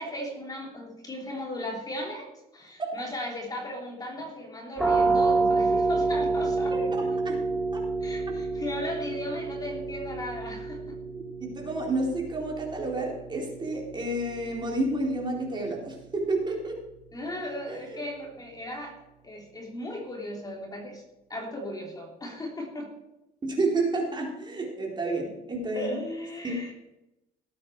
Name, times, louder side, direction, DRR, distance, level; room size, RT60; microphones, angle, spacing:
voice 1, 0.0-2.3 2.5-6.9 8.0-11.0 17.1-18.9 19.2-21.0 21.3-22.9 25.7-26.7, left 1 dB, 20° left, 0 dB, 3.3 m, -36 dB
sound 1, 4.8-16.3, right 3 dB, ahead, 3.0 m, -29 dB
voice 2, 6.7-7.4 7.7-7.8 11.4-16.7 17.7-18.0 23.4-26.0 26.4-26.6, right 2 dB, 25° right, -1 dB, 3.8 m, -30 dB
18.0 x 8.5 x 4.7 m, 0.91 s
cardioid pair, 110°, 17 cm